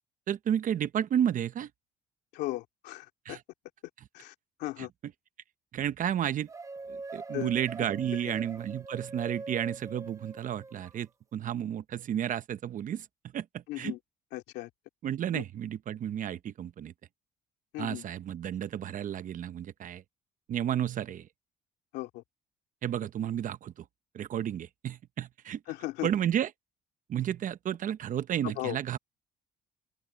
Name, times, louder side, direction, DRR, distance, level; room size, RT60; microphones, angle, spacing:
voice 1, 0.3-1.7 3.2-3.4 4.8-4.9 5.7-6.5 6.9-13.1 13.3-13.9 15.0-16.9 17.8-20.0 20.5-21.3 22.8-23.9 24.1-25.6 26.0-26.5 27.1-29.0, right 10 dB, 50° right, 1.0 m, -32 dB
voice 2, 2.3-3.4 4.1-4.9 7.3-7.5 8.2-8.3 13.7-14.0 14.3-14.7 15.3-15.4 17.7-18.0 21.9-22.2 25.7-26.1 28.4-28.8, left 17 dB, 90° left, 2.4 m, -37 dB
sound 1, 6.5-11.0, right 3 dB, 20° right, 0.9 m, -42 dB
open air
cardioid pair, 110°, 17 cm